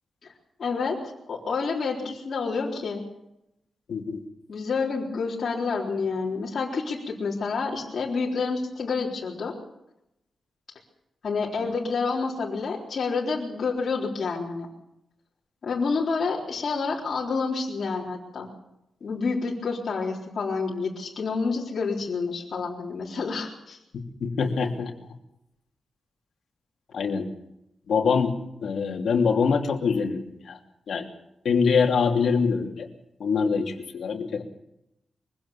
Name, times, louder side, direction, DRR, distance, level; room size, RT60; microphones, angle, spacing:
voice 1, 0.6-1.0 1.3-3.0 4.5-9.5 11.2-14.7 15.6-18.5 19.0-23.8, left 4 dB, 55° left, -4 dB, 3.9 m, -28 dB
voice 2, 3.9-4.2 23.9-24.9 26.9-27.3 27.9-28.3 28.6-30.6 30.9-31.1 31.4-32.9 33.2-34.4, left 5 dB, 70° left, 2 dB, 3.0 m, -24 dB
23.0 x 16.5 x 7.3 m, 0.85 s
wide cardioid pair, 140°, 0 cm